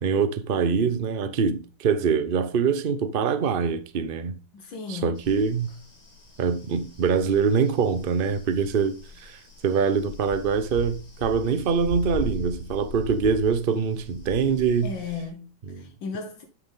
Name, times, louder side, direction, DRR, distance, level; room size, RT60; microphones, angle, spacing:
voice 1, 0.0-4.4 4.9-5.7 6.4-8.9 9.2-14.9 15.7-15.8, right 6 dB, 45° right, 0.7 m, -24 dB
voice 2, 4.5-5.2 14.8-16.4, left 5 dB, 80° left, 1.9 m, -35 dB
sound 1, 5.1-15.2, equal, 20° left, 2.4 m, -40 dB
10.0 x 6.0 x 4.0 m
omnidirectional pair, 2.0 m